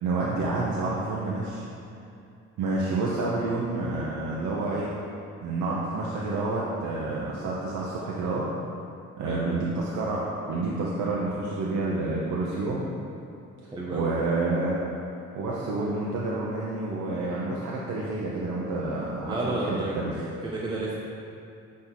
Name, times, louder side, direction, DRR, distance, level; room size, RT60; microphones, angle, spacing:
voice 1, 0.0-1.6 2.6-4.9 5.4-8.5 9.2-12.8 13.9-14.8 15.3-20.3, right 2 dB, 80° right, -5 dB, 0.8 m, -29 dB
voice 2, 13.7-14.1 19.3-19.9 20.4-21.0, right 2 dB, 15° right, -6 dB, 0.8 m, -31 dB
6.0 x 3.8 x 4.3 m, 2.6 s
cardioid pair, 90°, 30 cm